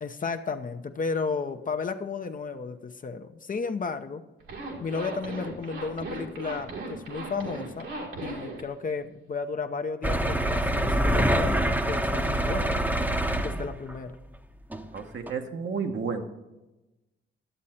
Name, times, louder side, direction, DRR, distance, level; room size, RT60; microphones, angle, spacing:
voice 1, 0.0-4.2 4.8-7.9 8.2-12.8 13.4-14.2, left 4 dB, 40° left, 7 dB, 0.7 m, -33 dB
Zipper (clothing), 4.4-8.6, right 3 dB, 80° right, 2.1 m, -37 dB
sound 1, 10.0-13.9 14.7-14.9 15.3-15.4, right 1 dB, 10° right, 0.8 m, -25 dB
voice 2, 14.9-16.2, right 5 dB, 60° right, 3 dB, 1.1 m, -31 dB
11.5 x 7.5 x 4.3 m, 1.0 s
cardioid pair, 65°, 21 cm